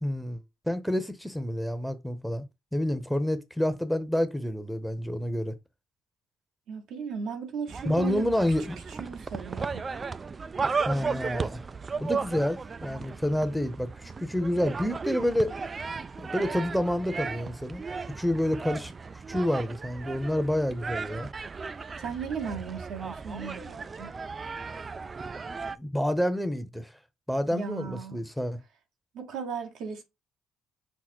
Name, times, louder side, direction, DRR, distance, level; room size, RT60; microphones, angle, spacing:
voice 1, 0.0-2.4 2.7-5.5 7.8-8.8 10.8-11.7 12.0-15.6 16.2-17.8 18.1-21.3 25.8-26.9 27.3-28.6, left 1 dB, ahead, 0.8 m, -28 dB
voice 2, 6.7-8.3 9.0-9.8 22.0-24.1 27.5-28.2 29.1-30.0, right 6 dB, 70° right, 1.2 m, -36 dB
sound 1, 7.7-25.8, right 4 dB, 35° right, 0.3 m, -35 dB
6.0 x 2.0 x 4.2 m
hypercardioid pair, 55°, 0 cm